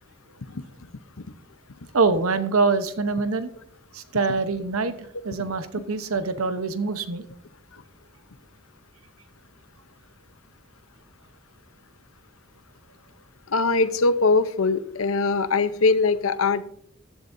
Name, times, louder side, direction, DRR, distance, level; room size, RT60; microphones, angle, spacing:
voice 1, 1.9-3.5 3.9-4.9 5.2-7.2, right 4 dB, 80° right, 11 dB, 0.9 m, -24 dB
voice 2, 13.5-16.6, left 3 dB, 75° left, 13 dB, 0.7 m, -21 dB
14.5 x 11.0 x 2.7 m, 0.70 s
head